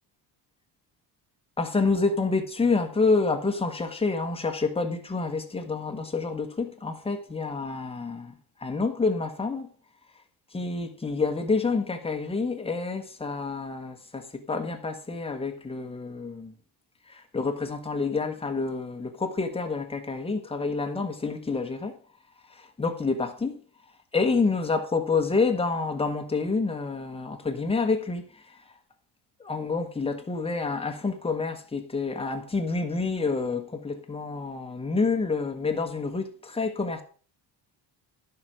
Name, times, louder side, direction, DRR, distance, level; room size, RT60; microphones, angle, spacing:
voice 1, 1.6-9.7 10.5-16.6 17.1-21.9 22.5-23.6 24.1-28.6 29.4-37.0, left 4 dB, 15° left, 1.3 m, -28 dB
11.0 x 6.0 x 4.8 m
cardioid pair, 140°, 43 cm